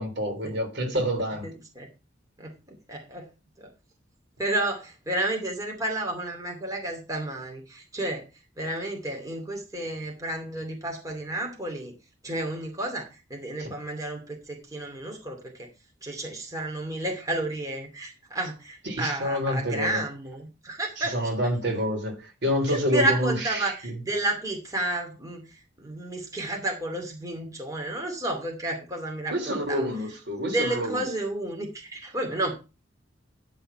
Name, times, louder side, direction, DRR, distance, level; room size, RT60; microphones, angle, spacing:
voice 1, 0.0-1.5 13.6-13.7 18.9-20.0 21.1-23.9 29.3-31.0, equal, 65° right, 3.7 m, -28 dB
voice 2, 1.4-1.9 2.4-3.3 3.6-3.7 4.4-8.3 8.6-11.9 12.2-15.7 16.0-21.3 22.7-29.9 30.4-32.5, right 1 dB, 20° right, 2.5 m, -31 dB
10.5 x 5.7 x 5.7 m
head